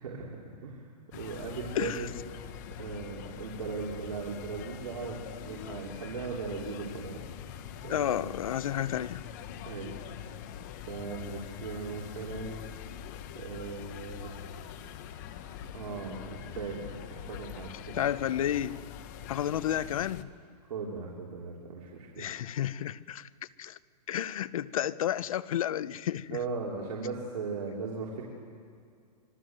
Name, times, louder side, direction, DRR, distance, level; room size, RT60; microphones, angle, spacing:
voice 1, 0.0-0.3 0.6-0.8 1.1-2.1 2.4-7.2 7.4-8.3 9.6-9.9 10.6-12.6 13.3-14.7 15.0-18.1 20.7-22.3 26.3-28.2, right 4 dB, 65° right, 3.9 m, -38 dB
sound 1, 1.1-20.2, left 9 dB, 25° left, 0.9 m, -44 dB
voice 2, 1.7-2.1 7.9-9.2 17.9-18.8 19.3-20.3 22.2-23.3 23.6-23.8 24.1-26.4, left 11 dB, 55° left, 0.8 m, -31 dB
25.5 x 23.0 x 7.7 m
hypercardioid pair, 170°, 21 cm